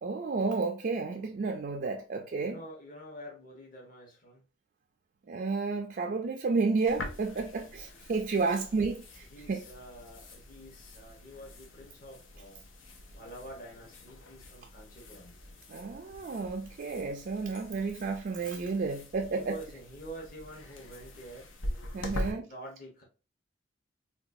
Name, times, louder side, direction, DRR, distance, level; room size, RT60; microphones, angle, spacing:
voice 1, 0.0-2.6 5.3-9.6 15.7-19.6 21.9-22.5, right 4 dB, 45° right, 0.3 m, -31 dB
voice 2, 2.4-4.4 8.3-8.6 9.3-12.6 13.1-15.4 19.3-21.5 22.1-23.0, right 1 dB, 45° left, 1.0 m, -47 dB
sound 1, 6.9-22.3, left 1 dB, 85° left, 0.6 m, -44 dB
3.8 x 2.3 x 2.5 m
head